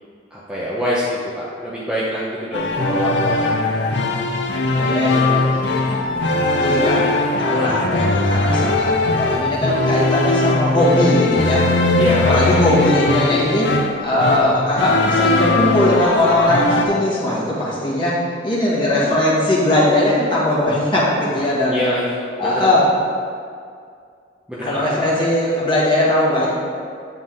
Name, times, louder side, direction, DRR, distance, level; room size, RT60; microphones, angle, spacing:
voice 1, 0.3-3.6 12.0-12.4 21.3-22.7 24.5-25.0, equal, 5° right, -8 dB, 0.7 m, -25 dB
sound 1, 2.5-16.9, left 2 dB, 65° left, 0.5 m, -19 dB
voice 2, 4.8-6.1 6.6-7.1 7.4-21.8 22.4-22.9 24.6-26.5, left 1 dB, 25° left, -7 dB, 1.7 m, -19 dB
9.1 x 3.9 x 3.8 m, 2.3 s
head